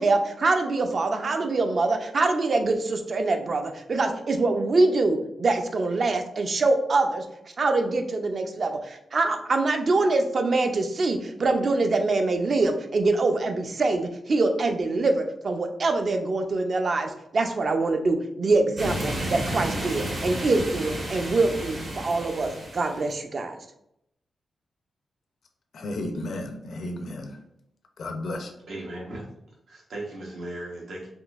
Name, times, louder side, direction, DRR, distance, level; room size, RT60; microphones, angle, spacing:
voice 1, 0.0-7.3 7.6-23.6, right 3 dB, 50° right, 0.4 m, -24 dB
sound 1, 18.8-23.1, right 1 dB, 65° right, 1.3 m, -32 dB
voice 2, 25.7-27.4 28.0-28.5, left 1 dB, 75° left, 0.4 m, -33 dB
voice 3, 28.7-29.3 29.7-31.1, right 1 dB, 85° right, 1.0 m, -37 dB
3.6 x 2.6 x 2.4 m
wide cardioid pair, 110°, 0 cm